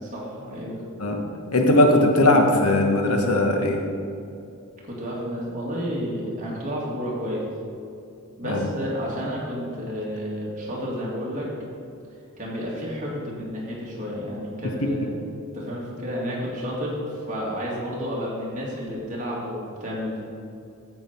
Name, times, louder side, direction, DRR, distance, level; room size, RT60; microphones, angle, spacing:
voice 1, 0.0-0.8 4.8-7.5 8.4-11.5 12.4-15.1 15.5-20.3, equal, 35° right, -5 dB, 2.2 m, -31 dB
voice 2, 1.5-3.8 8.4-8.7 14.8-14.9, left 1 dB, 80° left, 3 dB, 1.2 m, -19 dB
9.2 x 7.9 x 4.4 m, 2.5 s
head